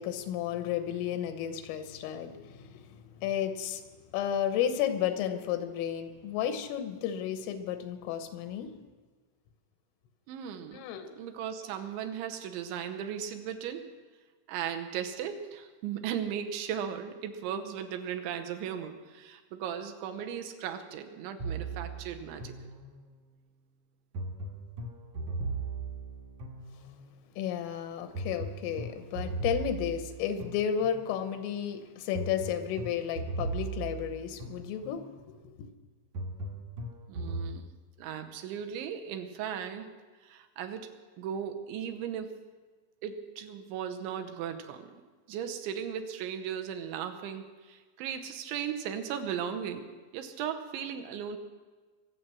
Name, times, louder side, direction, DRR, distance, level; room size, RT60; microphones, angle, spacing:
voice 1, 0.0-3.8 4.1-8.7 10.7-11.3 27.4-35.0 35.5-35.7, left 9 dB, 90° left, 9 dB, 3.6 m, -33 dB
voice 2, 10.3-13.9 14.5-22.5 37.1-37.6 38.0-39.9 40.2-40.9 41.2-42.4 43.0-45.0 45.3-51.4, right 8 dB, 75° right, 6 dB, 3.1 m, -37 dB
sound 1, 21.4-23.3 24.1-27.2 28.1-31.2 32.1-35.2 36.1-37.5, right 3 dB, 60° right, 2.1 m, -38 dB
23.5 x 8.0 x 6.2 m, 1.4 s
omnidirectional pair, 5.6 m